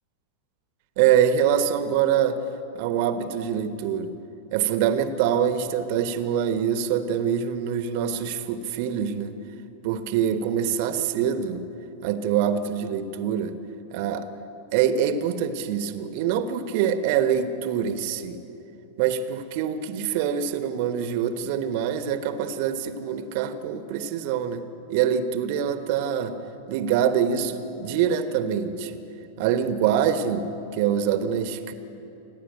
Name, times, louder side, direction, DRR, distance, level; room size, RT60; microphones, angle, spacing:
voice 1, 1.0-2.4 2.7-4.1 4.5-9.3 9.8-11.7 12.0-13.5 13.9-14.3 14.7-18.4 19.0-26.4 26.7-29.0 29.4-31.7, right 8 dB, 50° right, 10 dB, 1.2 m, -25 dB
28.5 x 11.0 x 8.9 m, 2.9 s
figure-of-eight pair, 90°, 0 cm